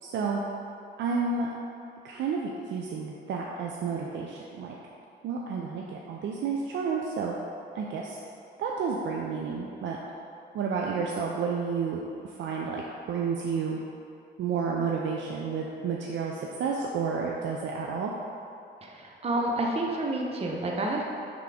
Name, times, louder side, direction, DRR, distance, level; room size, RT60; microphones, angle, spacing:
voice 1, 0.0-0.4 1.0-1.5 2.0-4.8 5.2-7.3 7.7-8.2 8.6-10.0 10.5-13.8 14.4-18.1, right 5 dB, 70° right, -1 dB, 0.5 m, -31 dB
voice 2, 18.8-21.0, right 1 dB, 30° right, -1 dB, 0.8 m, -29 dB
5.7 x 3.6 x 5.0 m, 2.6 s
cardioid pair, 90°, 20 cm